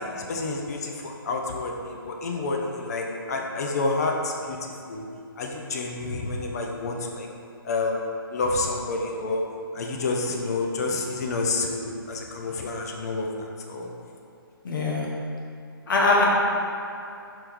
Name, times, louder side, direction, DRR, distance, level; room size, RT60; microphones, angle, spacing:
voice 1, 0.1-4.6 4.9-5.1 5.4-7.3 7.6-8.0 8.3-9.4 9.7-13.3 13.7-13.9, left 3 dB, 40° left, 1 dB, 0.5 m, -29 dB
voice 2, 14.6-15.1 15.9-16.2, left 3 dB, 55° left, -3 dB, 0.9 m, -22 dB
4.7 x 3.0 x 3.5 m, 2.7 s
hypercardioid pair, 155°, 13 cm